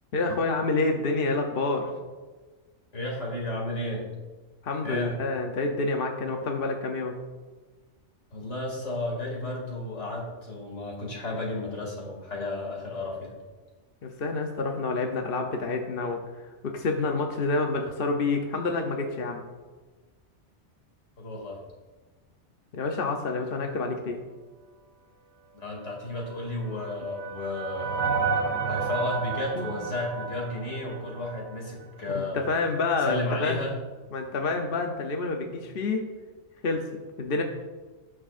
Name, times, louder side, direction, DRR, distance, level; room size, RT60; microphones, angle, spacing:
voice 1, 0.1-1.9 4.6-7.1 14.0-16.2 16.6-19.4 22.7-24.2 29.5-29.7 32.1-33.6 34.1-36.0 36.6-36.9 37.2-37.4, left 3 dB, 55° left, 3 dB, 0.9 m, -28 dB
voice 2, 2.9-4.0 4.8-5.2 8.3-13.4 21.2-21.6 25.5-28.1 28.7-32.5 33.0-33.8, left 1 dB, 75° left, -2 dB, 2.8 m, -33 dB
sound 1, 26.3-31.6, right 5 dB, 50° right, 0.9 m, -31 dB
18.5 x 6.2 x 2.5 m, 1.3 s
omnidirectional pair, 1.2 m